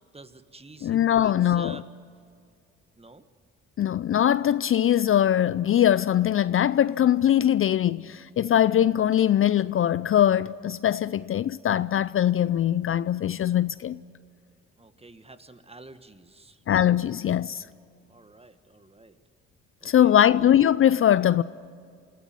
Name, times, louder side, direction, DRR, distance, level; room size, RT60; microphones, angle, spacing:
voice 1, 0.1-1.9 3.0-3.2 14.8-16.6 18.1-19.2 19.8-20.5, right 2 dB, 20° right, 1.5 m, -48 dB
voice 2, 0.8-1.8 3.8-14.0 16.7-17.6 19.8-21.4, left 10 dB, 45° left, 0.5 m, -21 dB
26.0 x 13.5 x 9.4 m
supercardioid pair, 50°, 30 cm